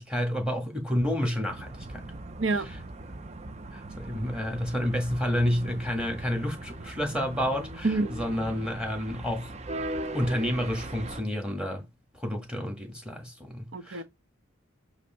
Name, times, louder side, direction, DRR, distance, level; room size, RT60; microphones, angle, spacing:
voice 1, 0.0-2.0 3.7-9.5 10.1-11.8 12.1-14.0, equal, 5° right, 1.7 m, -30 dB
sound 1, 1.5-11.2, right 2 dB, 35° right, 0.6 m, -39 dB
voice 2, 13.7-14.0, right 3 dB, 65° right, 1.1 m, -27 dB
8.2 x 2.8 x 5.6 m
head